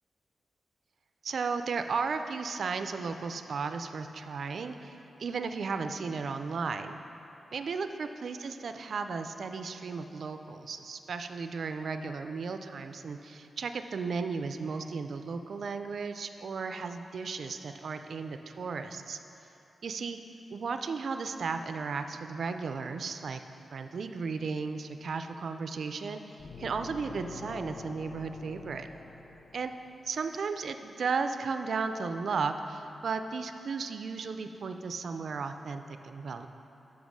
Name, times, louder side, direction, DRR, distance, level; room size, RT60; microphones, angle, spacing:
voice 1, 1.2-7.0 7.5-19.2 19.8-20.2 20.5-23.4 23.7-26.2 26.6-28.9 29.5-29.7 30.0-36.5, right 5 dB, 60° right, 8 dB, 0.3 m, -35 dB
sound 1, 26.4-30.1, left 4 dB, 45° left, 0.4 m, -46 dB
7.1 x 5.9 x 6.2 m, 2.9 s
wide cardioid pair, 155°, 0 cm